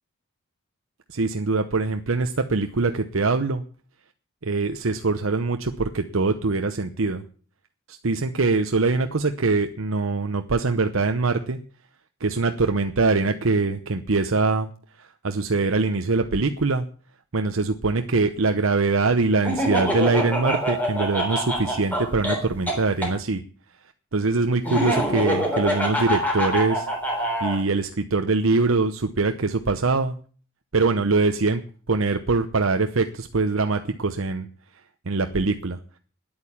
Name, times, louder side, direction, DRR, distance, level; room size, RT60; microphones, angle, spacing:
voice 1, 1.1-3.6 4.4-7.2 7.9-11.6 12.2-14.7 15.0-16.8 17.3-23.4 24.1-26.9 27.4-30.1 30.7-31.6 31.9-34.5 35.1-35.8, right 3 dB, 75° right, 7 dB, 0.8 m, -23 dB
Laughter, 19.4-23.1 24.6-27.6, equal, 10° left, 3.6 m, -25 dB
10.5 x 8.8 x 8.7 m, 0.43 s
head